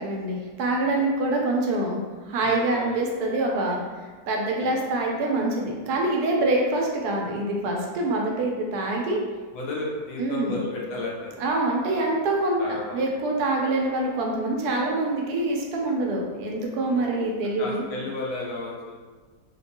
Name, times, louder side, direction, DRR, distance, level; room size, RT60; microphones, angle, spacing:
voice 1, 0.0-3.8 4.3-9.2 10.2-10.6 11.4-12.6 12.9-17.8, right 2 dB, 80° right, 0 dB, 1.1 m, -25 dB
voice 2, 2.4-3.2 4.6-4.8 9.5-11.4 12.6-13.0 13.3-13.5 16.8-17.1 17.4-19.0, left 2 dB, 65° left, -3 dB, 1.1 m, -34 dB
3.5 x 2.5 x 2.7 m, 1.4 s
omnidirectional pair, 1.7 m